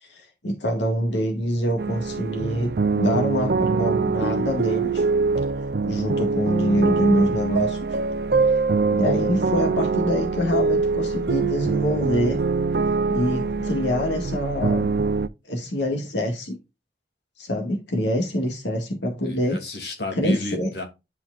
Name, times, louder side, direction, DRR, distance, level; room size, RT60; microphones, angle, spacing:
voice 1, 0.0-5.0 5.8-7.9 8.9-12.4 13.1-14.9 15.4-16.6 17.4-19.6 20.1-20.7, equal, 90° left, 2.0 m, -25 dB
sound 1, 1.8-15.3, right 4 dB, 60° right, 0.5 m, -24 dB
voice 2, 19.2-20.8, left 1 dB, 65° left, 2.8 m, -31 dB
11.0 x 5.9 x 2.5 m
head